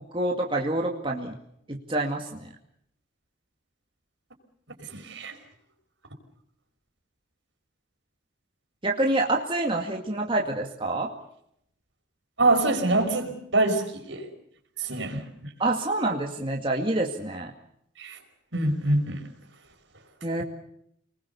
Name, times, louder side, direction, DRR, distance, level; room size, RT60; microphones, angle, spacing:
voice 1, 0.0-1.3 1.7-2.5 8.8-11.1 15.6-17.5 20.2-20.4, right 2 dB, 25° right, -1 dB, 2.2 m, -27 dB
voice 2, 4.9-5.3 12.4-14.3 14.8-15.2 18.0-18.2 18.5-19.2, right 2 dB, 65° right, 4 dB, 5.2 m, -24 dB
29.0 x 20.5 x 6.9 m, 0.73 s
head